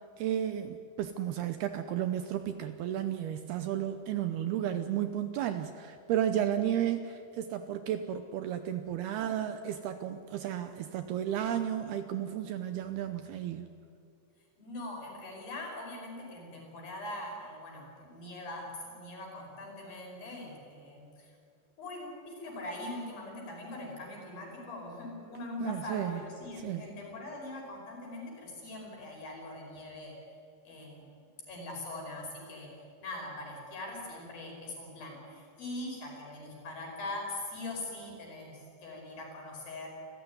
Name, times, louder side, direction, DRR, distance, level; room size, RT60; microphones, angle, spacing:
voice 1, 0.2-13.7 25.6-26.2 26.6-26.9, right 10 dB, 75° right, 8 dB, 2.4 m, -33 dB
voice 2, 14.6-21.3 21.8-30.2 30.6-31.1 31.5-32.7 33.0-39.9, left 2 dB, 50° left, 0 dB, 6.8 m, -42 dB
28.5 x 14.5 x 9.6 m, 2.3 s
omnidirectional pair, 5.3 m